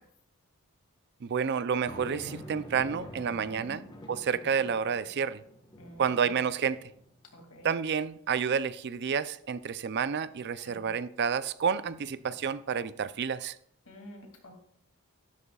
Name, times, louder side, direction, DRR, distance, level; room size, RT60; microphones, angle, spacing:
voice 1, 1.2-5.4 6.0-6.8 7.6-13.6, right 6 dB, 50° right, 15 dB, 0.4 m, -30 dB
sound 1, 1.8-7.4 7.9-8.0 11.9-13.0, equal, 20° left, 1.3 m, -48 dB
voice 2, 3.5-3.8 5.8-6.3 7.3-7.8 10.6-10.9 13.9-14.5, equal, 65° left, 2 dB, 2.5 m, -49 dB
12.5 x 12.0 x 2.3 m, 0.67 s
head